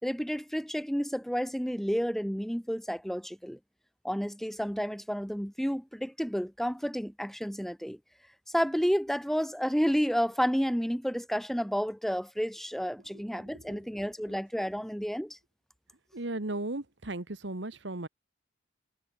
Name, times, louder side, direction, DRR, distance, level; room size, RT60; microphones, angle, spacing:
voice 1, 0.0-3.6 4.0-8.0 8.5-15.4, equal, ahead, 5.1 m, -31 dB
voice 2, 13.1-13.8 16.1-18.1, right 2 dB, 70° right, 1.7 m, -37 dB
head